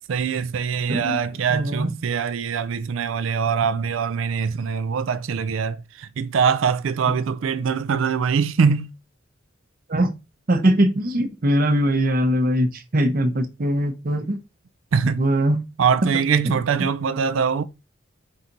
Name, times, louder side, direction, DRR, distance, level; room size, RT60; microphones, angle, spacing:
voice 1, 0.1-8.9 14.9-15.2 15.8-17.6, right 6 dB, 75° right, 0.4 m, -23 dB
voice 2, 1.5-1.9 9.9-10.1 10.5-14.4 15.2-15.6 16.4-16.5, right 1 dB, 45° right, 0.7 m, -21 dB
4.7 x 2.8 x 3.9 m
head